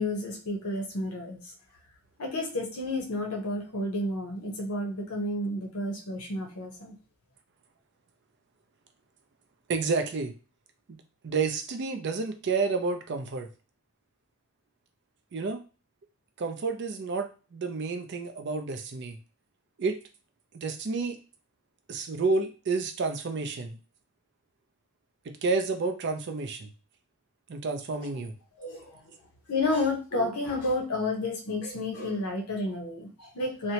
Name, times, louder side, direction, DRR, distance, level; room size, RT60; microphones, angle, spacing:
voice 1, 0.0-1.4 2.2-6.9 28.6-29.0 29.5-33.7, left 2 dB, 85° left, 3 dB, 0.7 m, -31 dB
voice 2, 9.7-10.3 10.9-11.0 11.2-13.5 15.3-15.6 16.4-19.2 19.8-20.0 20.5-21.2 21.9-23.8 25.3-26.7 27.5-28.3, right 4 dB, 50° right, 6 dB, 0.4 m, -30 dB
2.7 x 2.1 x 2.8 m, 0.34 s
head